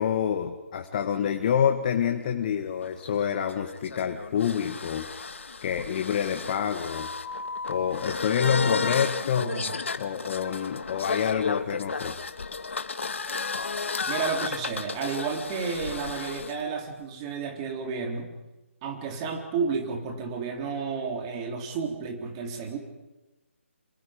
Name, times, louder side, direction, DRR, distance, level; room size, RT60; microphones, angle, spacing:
voice 1, 0.0-5.1 5.6-7.1 7.7-9.5 10.0-12.1, left 8 dB, 40° left, 6 dB, 1.7 m, -27 dB
sound 1, 2.8-16.5, left 4 dB, 65° left, 1.6 m, -33 dB
voice 2, 9.4-9.7 14.1-18.3 18.8-22.8, right 5 dB, 25° right, 3 dB, 3.7 m, -31 dB
27.0 x 27.0 x 5.1 m, 1.1 s
figure-of-eight pair, 145°, 7 cm